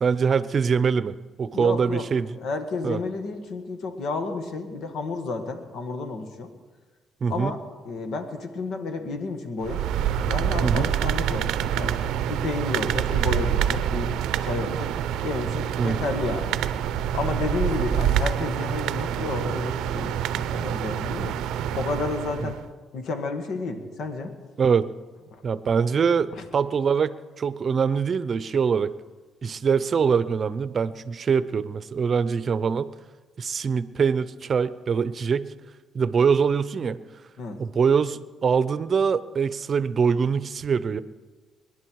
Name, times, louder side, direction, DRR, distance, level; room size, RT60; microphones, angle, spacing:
voice 1, 0.0-2.4 2.8-3.0 7.2-7.6 10.6-10.9 15.8-16.0 22.4-22.5 24.6-24.9 25.4-28.9 29.4-32.9 33.4-35.5 35.9-37.0 37.6-41.0, right 6 dB, 45° right, 15 dB, 0.7 m, -23 dB
voice 2, 1.5-2.1 2.4-6.5 7.3-7.6 7.8-9.8 10.3-12.0 12.3-14.1 14.4-14.9 15.2-16.9 17.1-21.3 21.7-22.6 22.9-24.3 25.3-25.4 26.3-26.4 37.4-37.6, left 3 dB, 75° left, 6 dB, 1.8 m, -31 dB
sound 1, 9.6-22.6, right 9 dB, 90° right, 0.6 m, -26 dB
22.0 x 11.0 x 4.8 m, 1.3 s
cardioid pair, 90°, 0 cm